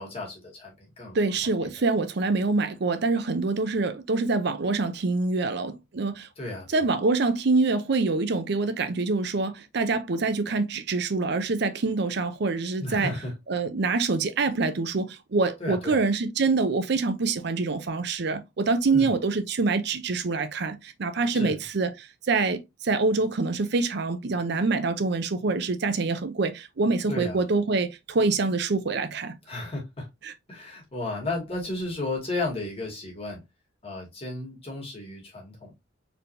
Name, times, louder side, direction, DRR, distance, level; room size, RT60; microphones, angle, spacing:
voice 1, 0.0-1.2 1.6-1.7 6.4-6.8 12.8-13.3 15.6-16.0 18.9-19.1 21.3-21.6 27.1-27.4 29.5-30.1 30.5-33.4 33.8-35.7, left 2 dB, 35° left, 2.0 m, -33 dB
voice 2, 1.1-6.3 6.7-13.1 13.5-29.3 30.2-30.3, right 3 dB, 65° right, 0.6 m, -25 dB
4.3 x 3.4 x 2.7 m
head